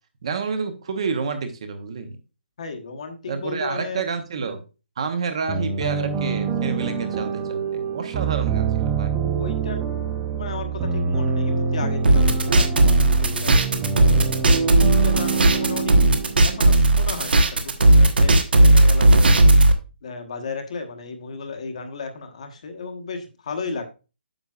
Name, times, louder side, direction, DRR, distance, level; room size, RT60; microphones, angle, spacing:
voice 1, 0.2-2.2 3.3-4.6 5.0-9.1, right 5 dB, 30° right, 8 dB, 0.9 m, -29 dB
voice 2, 2.6-4.0 8.2-8.3 9.3-9.8 10.3-14.2 14.5-16.0 16.4-19.4 20.0-23.8, left 4 dB, 35° left, 6 dB, 1.1 m, -34 dB
sound 1, 5.5-17.2, right 5 dB, 10° right, 0.5 m, -25 dB
sound 2, 12.0-19.7, right 2 dB, 65° right, 1.2 m, -15 dB
9.0 x 6.8 x 2.4 m, 0.31 s
hypercardioid pair, 175°, 6 cm